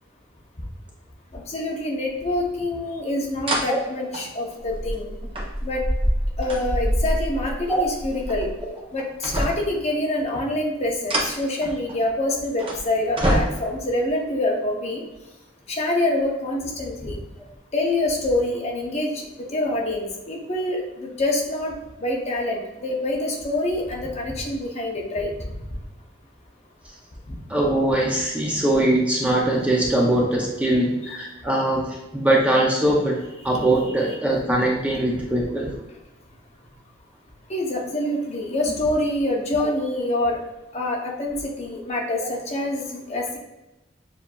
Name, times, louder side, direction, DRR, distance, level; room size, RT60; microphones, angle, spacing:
voice 1, 1.3-5.1 5.6-5.8 6.4-8.5 8.9-15.0 15.7-17.2 17.7-21.7 22.0-25.3 27.3-27.4 31.1-31.2 37.5-40.4 40.7-43.4, left 1 dB, 35° left, 0 dB, 0.8 m, -26 dB
sound 1, 2.5-2.6 3.5-3.6 4.1-8.6 9.0-9.8 10.8-12.0 12.6-12.8 13.2-13.9 14.8-14.9, right 1 dB, 30° right, 0.9 m, -25 dB
voice 2, 27.5-33.2 33.4-35.7, right 1 dB, 5° right, -3 dB, 0.5 m, -21 dB
7.0 x 2.7 x 2.3 m, 0.98 s
head